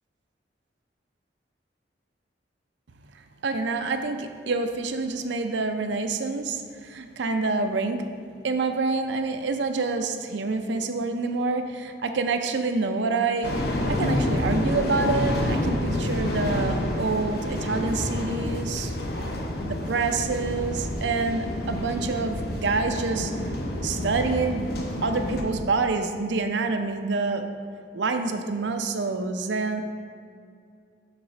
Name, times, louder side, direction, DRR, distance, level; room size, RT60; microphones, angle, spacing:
voice 1, 3.4-8.1 8.4-13.5 13.9-18.9 19.6-23.3 23.8-24.7 25.0-27.4 27.9-29.8, right 3 dB, 75° right, 7 dB, 0.5 m, -27 dB
sound 1, 13.4-25.4, left 1 dB, 55° left, 0.8 m, -28 dB
6.7 x 4.1 x 5.6 m, 2.3 s
head